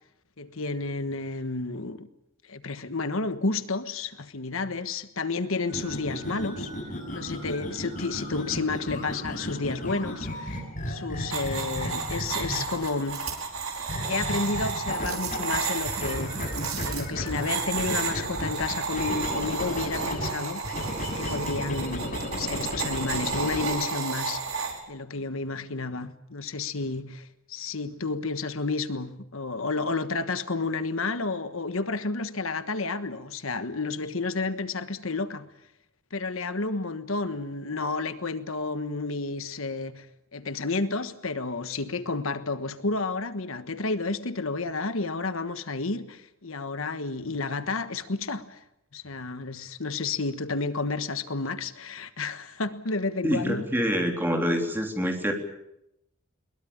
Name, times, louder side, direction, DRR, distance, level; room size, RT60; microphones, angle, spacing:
voice 1, 0.4-2.1 2.5-6.7 7.1-13.2 14.0-16.6 16.9-20.7 21.2-24.6 24.9-35.5 36.1-40.1 40.3-48.6 48.9-53.7, left 3 dB, 75° left, 1.4 m, -31 dB
sound 1, 5.7-12.9 13.9-15.6 15.8-20.3 20.6-23.7, left 1 dB, 40° left, 7.5 m, -34 dB
sound 2, 11.3-24.8, right 5 dB, 90° right, 4.9 m, -32 dB
voice 2, 53.2-55.3, equal, 10° right, 3.5 m, -26 dB
22.0 x 21.0 x 8.7 m
head